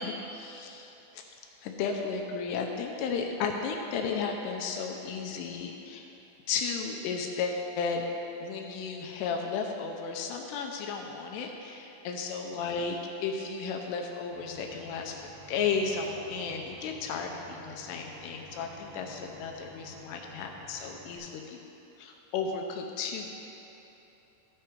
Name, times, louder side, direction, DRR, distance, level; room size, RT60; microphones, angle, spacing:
voice 1, 0.0-1.2 1.6-6.1 6.5-8.1 8.4-15.2 15.5-21.6 22.0-23.3, left 5 dB, 85° left, 2 dB, 2.4 m, -34 dB
sound 1, 14.3-21.2, right 2 dB, 85° right, 3.7 m, -52 dB
14.5 x 4.9 x 4.5 m, 3.0 s
omnidirectional pair, 5.4 m